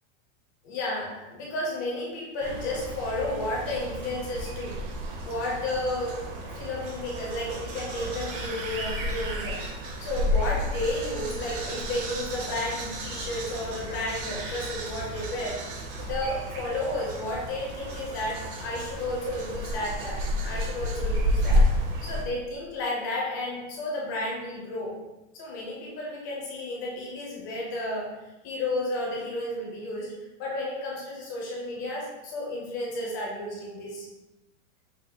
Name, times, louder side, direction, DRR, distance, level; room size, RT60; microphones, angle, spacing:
voice 1, 0.6-4.8 5.3-9.7 10.0-15.6 16.0-21.7 22.0-25.0 25.3-28.2 28.4-34.1, left 1 dB, 15° left, -3 dB, 0.4 m, -32 dB
sound 1, 2.4-22.2, equal, 45° right, 0.7 m, -31 dB
5.0 x 2.5 x 4.0 m, 1.0 s
supercardioid pair, 175°, 37 cm